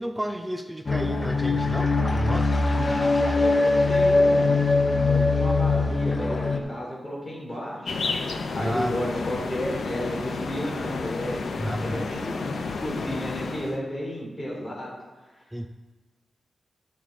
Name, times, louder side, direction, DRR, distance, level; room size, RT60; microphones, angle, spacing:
voice 1, 0.0-2.6 8.5-8.9 11.6-12.1 15.5-15.7, equal, 10° right, 6 dB, 0.4 m, -31 dB
sound 1, 0.9-6.6, left 3 dB, 35° left, 0.8 m, -22 dB
voice 2, 2.8-7.9 8.5-11.4 11.8-14.9, equal, 20° left, -4 dB, 3.0 m, -33 dB
sound 2, 7.8-13.8, left 4 dB, 70° left, 0.8 m, -31 dB
12.0 x 7.1 x 3.8 m, 1.2 s
wide cardioid pair, 140°, 0 cm